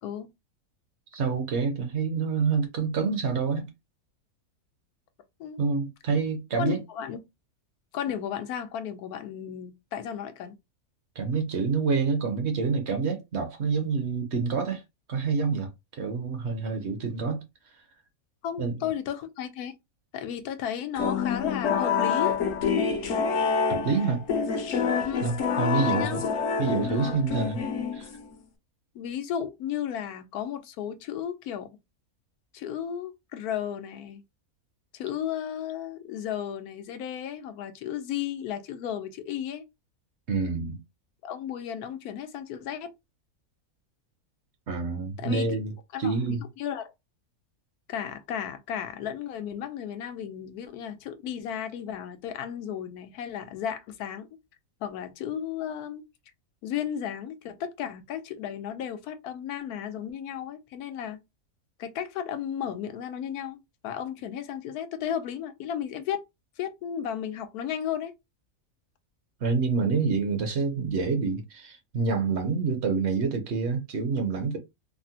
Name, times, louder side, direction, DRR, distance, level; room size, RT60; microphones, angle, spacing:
voice 1, 1.1-3.7 5.6-6.8 11.2-14.8 15.1-17.4 18.6-18.8 23.7-24.2 25.2-26.2 26.6-27.6 27.9-28.1 40.3-40.8 44.7-45.7 46.0-46.4 69.4-74.6, right 4 dB, 55° right, 0.9 m, -27 dB
voice 2, 6.6-7.2 7.9-10.6 18.4-19.7 20.1-22.4 25.0-25.3 26.0-26.3 28.9-31.7 32.5-34.2 34.9-39.6 41.2-42.9 45.2-45.5 45.9-46.9 47.9-54.3 54.8-56.0 56.6-61.2 61.8-66.2 66.6-68.1, left 9 dB, 90° left, 1.1 m, -34 dB
sound 1, 21.0-28.3, left 6 dB, 65° left, 1.0 m, -27 dB
3.6 x 2.0 x 2.7 m
omnidirectional pair, 1.5 m